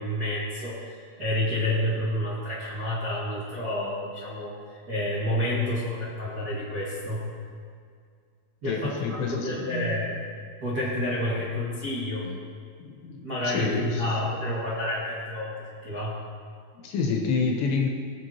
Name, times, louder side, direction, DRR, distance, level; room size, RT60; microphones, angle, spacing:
voice 1, 0.0-7.2 8.6-10.2 10.6-12.2 13.2-16.2, left 1 dB, 75° right, -10 dB, 0.8 m, -29 dB
voice 2, 8.6-10.0 12.2-12.4 12.8-14.1 16.7-17.9, left 5 dB, 70° left, -1 dB, 3.1 m, -29 dB
20.5 x 7.5 x 3.0 m, 2.1 s
omnidirectional pair, 5.8 m